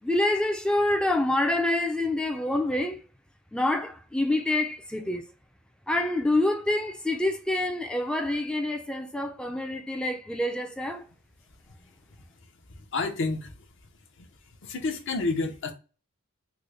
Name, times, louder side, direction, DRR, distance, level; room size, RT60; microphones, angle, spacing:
voice 1, 0.0-3.0 3.5-5.3 5.9-11.0, left 1 dB, 5° left, 0.3 m, -27 dB
voice 2, 12.7-13.7 14.2-14.3 14.6-15.7, left 3 dB, 60° left, 0.7 m, -30 dB
3.7 x 2.1 x 3.2 m
head